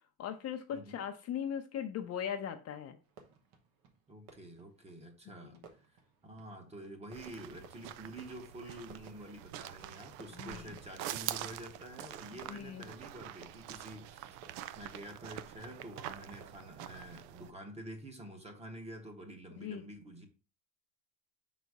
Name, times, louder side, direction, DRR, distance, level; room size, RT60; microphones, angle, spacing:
voice 1, 0.2-3.0 5.4-5.5 10.4-10.8 12.5-12.9 19.6-19.8, left 9 dB, 40° left, 0.6 m, -39 dB
Fireworks, 3.0-17.3, right 5 dB, 65° right, 1.3 m, -61 dB
voice 2, 4.1-5.6 6.2-14.4 14.8-20.3, right 1 dB, 15° right, 1.0 m, -48 dB
sound 1, 7.1-17.5, right 12 dB, 85° right, 0.6 m, -45 dB
5.4 x 4.1 x 4.7 m
cardioid pair, 160°, 39 cm